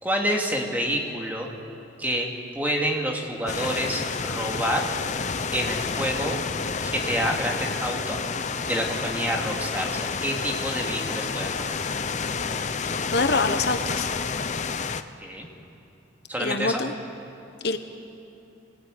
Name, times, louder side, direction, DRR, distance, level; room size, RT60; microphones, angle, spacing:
voice 1, 0.0-1.5 2.0-2.3 2.5-4.8 5.5-6.4 6.8-8.2 8.7-11.8 15.2-15.5 16.3-16.8, equal, 10° right, 0 dB, 2.5 m, -28 dB
sound 1, 3.5-15.0, left 5 dB, 40° left, 0.7 m, -29 dB
voice 2, 13.0-14.1 16.4-16.9 17.6-17.8, left 3 dB, 60° left, 8 dB, 1.1 m, -25 dB
25.0 x 19.0 x 9.2 m, 2.9 s
head